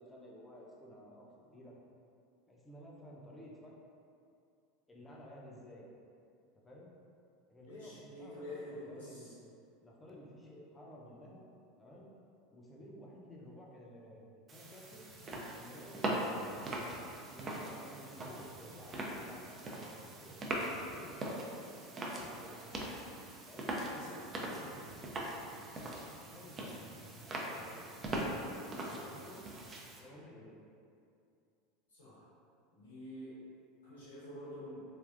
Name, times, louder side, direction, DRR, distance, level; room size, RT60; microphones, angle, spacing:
voice 1, 0.0-1.7 2.5-3.7 4.9-5.9 6.6-6.9 7.5-9.4 9.8-11.4 11.8-12.1 12.5-15.1 15.5-16.6 17.3-19.5 20.2-21.6 22.0-22.6 23.5-25.0 26.3-26.8 27.2-27.9 28.6-29.7 30.0-30.6, equal, 15° left, -3 dB, 0.6 m, -53 dB
voice 2, 7.6-9.3 24.0-24.6 31.9-32.2 32.7-33.3 33.8-34.8, left 1 dB, 90° left, -12 dB, 1.4 m, -48 dB
sound 1, 14.5-30.0, right 1 dB, 30° right, 0.4 m, -41 dB
3.4 x 2.3 x 2.4 m, 2.5 s
hypercardioid pair, 85°, 0 cm